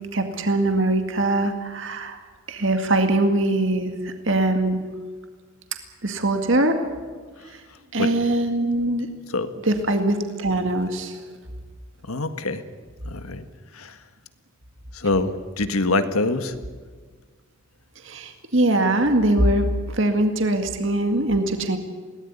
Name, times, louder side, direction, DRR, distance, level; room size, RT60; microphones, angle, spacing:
voice 1, 0.1-2.2 2.5-4.9 6.0-6.8 7.9-9.1 9.7-11.2 18.0-21.8, right 1 dB, 60° right, 6 dB, 2.1 m, -22 dB
voice 2, 12.1-12.6 13.0-13.5 13.7-14.0 14.9-16.5, left 2 dB, 90° left, 10 dB, 1.7 m, -25 dB
21.5 x 18.5 x 9.8 m, 1.5 s
head